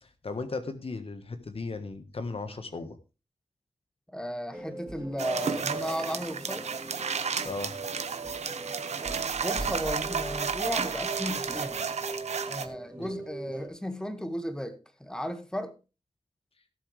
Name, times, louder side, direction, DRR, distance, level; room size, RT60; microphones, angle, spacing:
voice 1, 0.0-3.0 7.4-7.7 13.0-13.1, left 3 dB, 60° left, 1.4 m, -36 dB
voice 2, 4.1-6.7 9.4-11.8 12.5-15.7, equal, 5° left, 1.9 m, -35 dB
sound 1, 4.5-13.7, right 1 dB, 15° right, 3.2 m, -41 dB
sound 2, 5.2-12.7, right 6 dB, 90° right, 1.0 m, -32 dB
18.0 x 7.4 x 3.3 m
wide cardioid pair, 65°, 11 cm